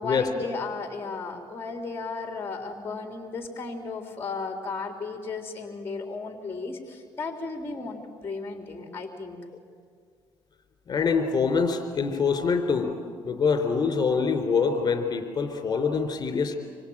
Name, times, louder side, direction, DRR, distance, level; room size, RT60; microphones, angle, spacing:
voice 1, 0.0-9.4, left 4 dB, 25° left, 4 dB, 3.6 m, -35 dB
voice 2, 10.9-12.9 13.2-16.6, left 5 dB, 40° left, 6 dB, 4.0 m, -25 dB
26.5 x 24.5 x 8.8 m, 2.1 s
cardioid pair, 95°, 10 cm